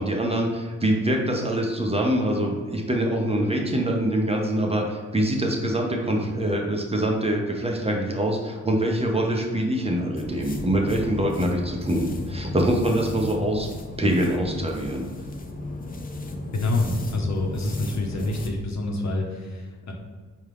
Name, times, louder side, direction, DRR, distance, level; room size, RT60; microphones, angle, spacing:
voice 1, 0.0-13.7 14.0-15.0, right 1 dB, 20° right, 0 dB, 0.7 m, -24 dB
sound 1, 10.2-18.5, left 1 dB, 25° left, 0.5 m, -35 dB
voice 2, 16.5-19.9, left 2 dB, 55° left, 0 dB, 0.9 m, -27 dB
4.4 x 2.4 x 3.4 m, 1.5 s
supercardioid pair, 55°, 32 cm